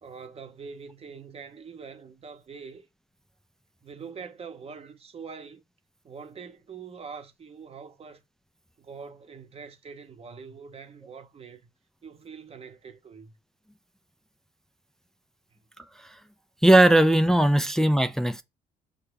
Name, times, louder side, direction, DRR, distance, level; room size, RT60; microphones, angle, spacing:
voice 1, 0.0-2.9 3.8-5.6 6.0-8.2 8.8-11.7 12.0-13.3 17.6-17.7, right 5 dB, 35° right, 0.8 m, -44 dB
voice 2, 16.6-18.4, right 1 dB, 5° left, 0.4 m, -19 dB
5.6 x 2.2 x 3.4 m
supercardioid pair, 70°, 17 cm